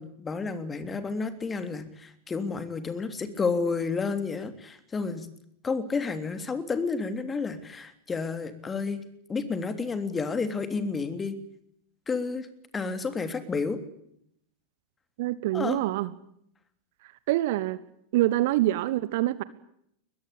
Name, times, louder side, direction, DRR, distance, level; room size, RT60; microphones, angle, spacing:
voice 1, 0.0-5.3 5.6-9.0 9.3-11.4 12.1-12.5 12.7-13.8 15.5-15.8, left 4 dB, 15° left, 10 dB, 3.2 m, -30 dB
voice 2, 15.2-16.1 17.3-17.8 18.1-19.4, right 16 dB, 50° right, 17 dB, 1.2 m, -25 dB
23.0 x 21.0 x 8.7 m, 0.72 s
figure-of-eight pair, 90°, 0 cm